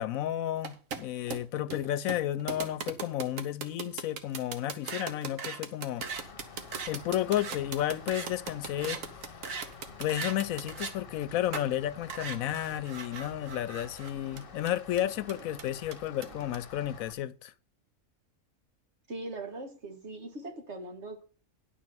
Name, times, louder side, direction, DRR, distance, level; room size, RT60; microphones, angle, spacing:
voice 1, 0.0-6.1 6.9-9.0 10.0-17.5, left 12 dB, 80° left, 1.0 m, -32 dB
sound 1, 0.6-10.9 11.5-11.7 12.1-16.6, right 5 dB, 70° right, 1.4 m, -39 dB
Rain, 6.0-17.1, left 5 dB, 45° left, 1.1 m, -49 dB
voice 2, 19.1-21.2, right 2 dB, 55° right, 1.9 m, -41 dB
10.5 x 4.4 x 7.5 m
omnidirectional pair, 1.4 m